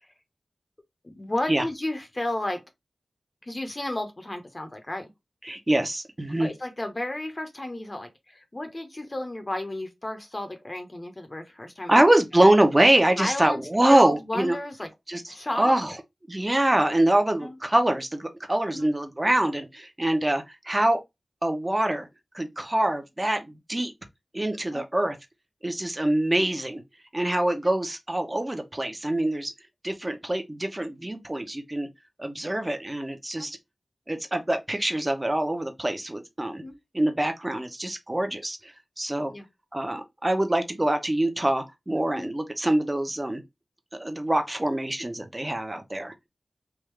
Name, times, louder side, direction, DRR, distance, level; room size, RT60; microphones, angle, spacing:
voice 1, 1.0-2.6 3.4-5.1 6.4-12.0 13.2-13.6 13.9-14.9 15.3-15.7 17.4-17.5 18.7-18.9 24.7-24.9 33.4-33.5 36.6-36.8 39.3-39.5 42.1-42.3, left 1 dB, 35° left, 1.0 m, -32 dB
voice 2, 5.4-6.5 11.9-14.6 15.1-15.2 15.5-15.9 16.3-21.0 21.4-22.1 22.3-23.9 24.3-25.2 25.6-26.8 27.1-29.5 29.8-31.9 32.2-33.6 34.1-36.6 36.9-39.3 39.7-43.4 44.0-46.1, right 1 dB, 25° right, 0.9 m, -24 dB
3.6 x 2.6 x 3.2 m
wide cardioid pair, 65°, 0 cm